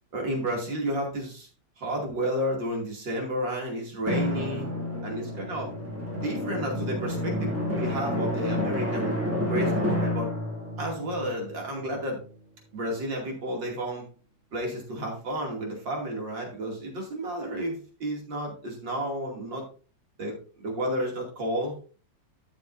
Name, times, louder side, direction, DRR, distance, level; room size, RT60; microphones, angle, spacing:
voice 1, 0.1-1.5 1.8-4.7 5.0-5.7 6.2-9.1 9.5-10.3 10.8-12.2 12.7-14.0 14.5-19.6 20.2-21.8, right 1 dB, 65° right, 0 dB, 3.3 m, -31 dB
Drum, 4.1-12.3, left 1 dB, 5° right, 2.0 m, -30 dB
12.5 x 6.9 x 2.6 m, 0.37 s
omnidirectional pair, 2.2 m